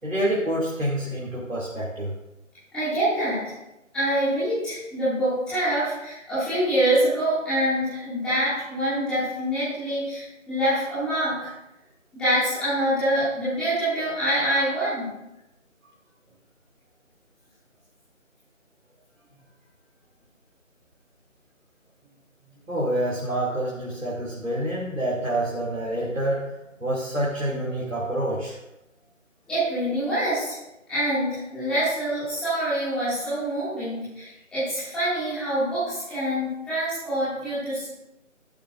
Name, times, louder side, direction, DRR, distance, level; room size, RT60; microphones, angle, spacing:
voice 1, 0.0-2.1 22.7-26.5 26.8-28.6, right 1 dB, 80° right, -6 dB, 3.0 m, -27 dB
voice 2, 2.7-3.4 3.9-11.5 12.1-15.1 29.5-30.6 30.9-37.8, right 1 dB, ahead, -14 dB, 2.4 m, -25 dB
12.0 x 11.0 x 2.7 m, 0.93 s
figure-of-eight pair, 160°, 39 cm